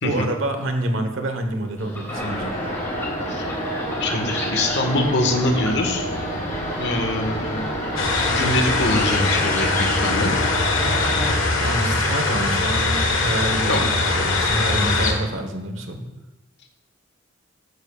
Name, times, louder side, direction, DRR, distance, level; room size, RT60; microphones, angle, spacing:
voice 1, 0.0-2.5 11.6-16.0, right 1 dB, 70° right, 6 dB, 1.2 m, -27 dB
sound 1, 1.8-14.9, left 1 dB, 10° left, 2.4 m, -35 dB
sound 2, 2.1-11.3, equal, 35° left, 2.6 m, -29 dB
voice 2, 4.0-6.1 6.8-7.7 8.2-10.3 13.7-13.9, left 1 dB, 55° left, 3 dB, 1.4 m, -24 dB
sound 3, 8.0-15.1, left 3 dB, 70° left, 1.5 m, -22 dB
13.5 x 10.0 x 2.4 m, 1.0 s
head